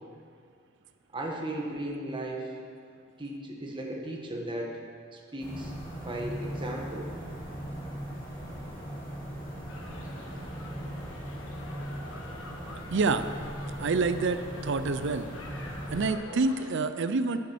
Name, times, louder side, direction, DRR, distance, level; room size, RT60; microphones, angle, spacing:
voice 1, 1.1-2.5 3.2-4.8 5.1-7.1, right 1 dB, 25° right, 0 dB, 1.5 m, -36 dB
sound 1, 5.4-16.1, equal, 25° left, 2.5 m, -39 dB
sound 2, 9.7-16.7, left 2 dB, 80° left, 1.4 m, -47 dB
voice 2, 12.9-13.3 13.8-15.3 15.9-17.4, right 3 dB, 60° right, 10 dB, 0.5 m, -27 dB
11.0 x 8.4 x 6.2 m, 2.1 s
head